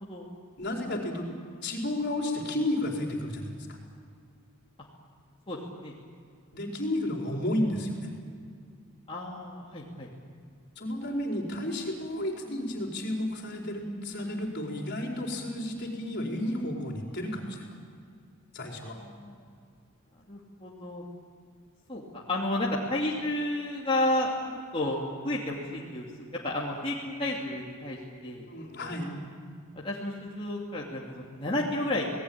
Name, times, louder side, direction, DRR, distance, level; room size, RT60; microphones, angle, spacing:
voice 1, 0.6-1.3 1.6-3.8 6.5-8.1 10.8-17.6 18.5-19.0 28.5-29.1, left 1 dB, 50° left, 0 dB, 4.7 m, -32 dB
voice 2, 5.5-5.9 7.3-7.4 9.1-10.1 18.8-19.4 20.3-21.0 21.9-25.0 25.2-26.1 26.4-28.5 28.8-29.2 29.8-32.1, left 1 dB, 25° left, -5 dB, 2.9 m, -32 dB
27.5 x 19.0 x 8.8 m, 2.2 s
head